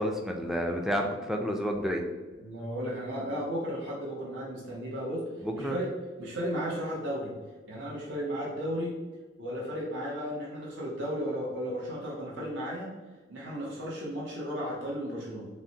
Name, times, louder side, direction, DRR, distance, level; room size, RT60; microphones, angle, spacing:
voice 1, 0.0-2.0 5.4-5.8, equal, ahead, 2 dB, 0.3 m, -30 dB
voice 2, 2.4-5.2 5.5-5.9 6.2-7.3 7.7-8.9 9.4-12.9 13.3-15.5, equal, 70° right, -6 dB, 0.9 m, -34 dB
5.8 x 2.2 x 2.7 m, 1.3 s
head